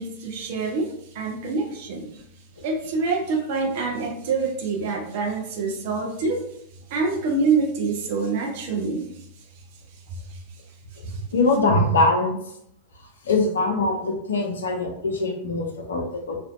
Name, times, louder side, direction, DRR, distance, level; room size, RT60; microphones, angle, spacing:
voice 1, 0.0-2.2 2.6-6.4 6.9-9.1 10.3-10.4 11.1-11.2, right 4 dB, 50° right, 2 dB, 0.4 m, -26 dB
voice 2, 11.3-12.4 13.3-16.4, left 2 dB, 65° left, 3 dB, 0.4 m, -22 dB
2.5 x 2.1 x 2.3 m, 0.72 s
figure-of-eight pair, 90°, 0 cm